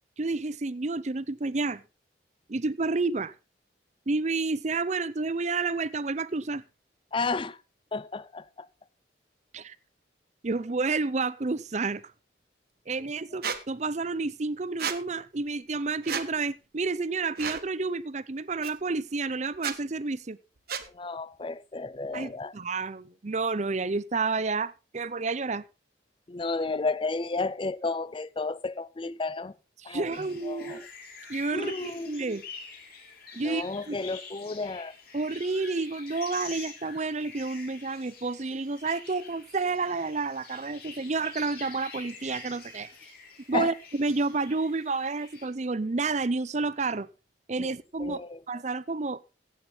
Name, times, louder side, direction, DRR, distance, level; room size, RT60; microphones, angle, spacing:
voice 1, 0.2-1.8 2.5-3.3 4.1-6.6 9.5-9.7 10.4-12.0 12.9-20.4 22.1-25.6 29.8-30.8 31.3-32.4 33.4-34.0 35.1-42.9 43.5-47.1 47.5-49.2, right 3 dB, 40° right, 0.6 m, -30 dB
voice 2, 7.1-7.6 7.9-8.7 13.0-13.1 20.9-22.6 26.3-29.5 29.8-30.8 31.5-32.1 33.4-34.9 43.5-43.7 47.6-47.7 48.0-48.4, left 3 dB, 25° left, 0.5 m, -32 dB
Squeak, 13.4-13.6 14.8-15.0 16.0-16.3 17.4-17.6 18.6-18.7 19.5-19.8 20.7-20.9, right 7 dB, 55° right, 1.2 m, -31 dB
sound 1, 30.1-45.5, left 5 dB, 55° left, 3.9 m, -46 dB
16.0 x 8.5 x 4.0 m
head